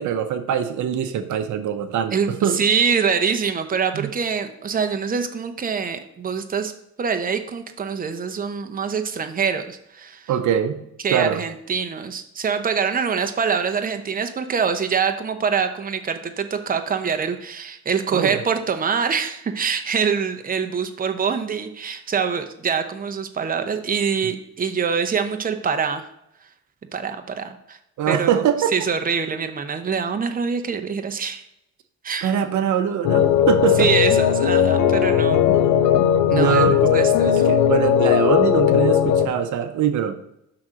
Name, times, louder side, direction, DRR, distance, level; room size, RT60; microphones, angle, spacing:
voice 1, 0.0-2.6 3.9-4.1 10.3-10.8 11.1-11.4 18.1-18.4 28.0-28.7 32.2-33.9 36.3-40.2, right 9 dB, 75° right, 9 dB, 0.7 m, -23 dB
voice 2, 2.1-6.7 7.0-10.3 11.0-26.0 26.9-27.8 28.1-28.4 28.7-31.4 32.0-32.3 33.8-35.4 36.3-37.5, right 6 dB, 30° right, 7 dB, 0.8 m, -24 dB
sound 1, 33.0-39.3, left 9 dB, 80° left, 0.6 m, -17 dB
6.0 x 3.8 x 6.2 m, 0.80 s
cardioid pair, 90°, 30 cm